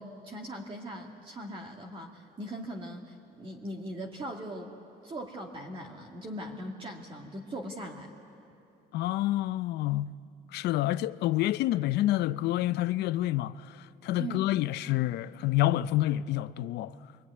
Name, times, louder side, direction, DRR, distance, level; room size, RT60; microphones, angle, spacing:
voice 1, 0.0-4.7 5.0-8.1 14.2-14.5, right 1 dB, 30° right, 2.2 m, -40 dB
voice 2, 8.9-10.2 10.5-13.8 14.0-16.9, left 15 dB, 75° left, 0.6 m, -28 dB
25.5 x 23.0 x 9.6 m
cardioid pair, 110°, 17 cm